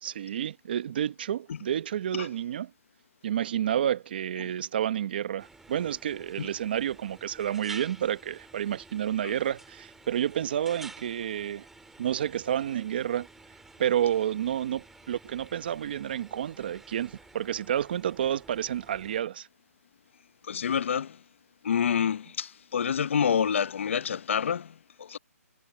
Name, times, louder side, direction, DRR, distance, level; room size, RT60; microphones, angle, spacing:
voice 1, 0.0-2.7 3.2-11.6 12.0-13.3 13.8-19.5, right 10 dB, 35° right, 1.1 m, -30 dB
sound 1, 5.4-19.2, right 3 dB, 5° right, 2.1 m, -51 dB
voice 2, 20.5-21.2 21.6-25.2, left 7 dB, 50° left, 1.0 m, -28 dB
hypercardioid pair, 165°, 9 cm